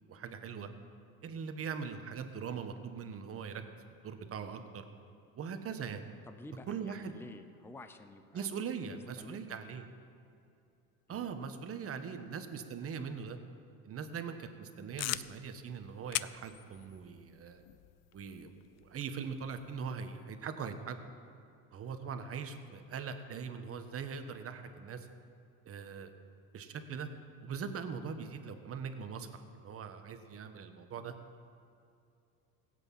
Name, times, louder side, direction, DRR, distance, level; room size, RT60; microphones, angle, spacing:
voice 1, 0.1-0.7 1.2-3.6 4.0-4.9 5.4-6.0 6.7-7.1 8.3-9.9 11.1-13.4 13.8-17.6 18.1-18.5 18.8-21.0 21.7-25.1 25.6-26.1 26.5-27.1 27.4-31.1, right 6 dB, 35° right, 7 dB, 1.4 m, -41 dB
voice 2, 6.3-8.5 8.9-9.4 11.1-11.4 22.0-22.2, left 2 dB, 5° left, 8 dB, 0.7 m, -52 dB
sound 1, 15.0-19.7, left 16 dB, 40° left, 0.5 m, -43 dB
17.0 x 8.3 x 7.4 m, 2.6 s
supercardioid pair, 105°, 41 cm